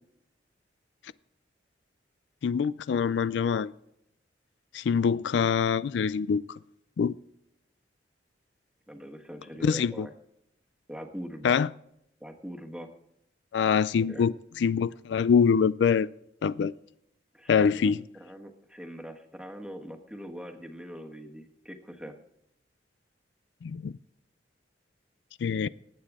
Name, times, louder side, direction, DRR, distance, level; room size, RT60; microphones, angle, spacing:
voice 1, 2.4-3.7 4.7-6.6 7.0-7.1 9.6-10.1 11.4-11.7 13.5-16.1 16.4-16.7 17.5-18.0 23.6-23.9 25.4-25.7, left 6 dB, 85° left, 0.4 m, -24 dB
voice 2, 8.9-10.1 10.9-11.6 12.2-12.9 14.1-14.3 17.3-22.1, equal, 5° right, 1.3 m, -42 dB
19.0 x 8.6 x 3.6 m
head